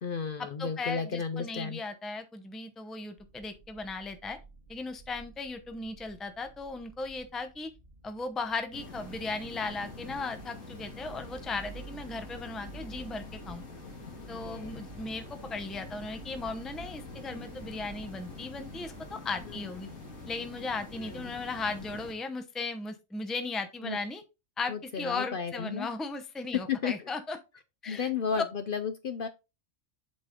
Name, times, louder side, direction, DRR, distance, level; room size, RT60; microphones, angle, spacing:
voice 1, 0.0-1.8 14.3-14.8 19.5-20.0 21.0-21.3 23.8-24.0 24.7-25.9 26.5-27.1 27.9-29.3, left 6 dB, 55° left, 10 dB, 0.7 m, -34 dB
voice 2, 0.6-4.4 4.7-7.7 8.0-13.6 14.3-19.9 20.3-24.2 24.6-27.4 27.8-28.1, left 3 dB, ahead, 8 dB, 0.6 m, -37 dB
sound 1, 3.2-19.5, right 3 dB, 40° right, 2.1 m, -52 dB
sound 2, 8.7-22.1, left 3 dB, 90° left, 2.3 m, -45 dB
7.7 x 4.2 x 3.7 m, 0.27 s
omnidirectional pair, 1.3 m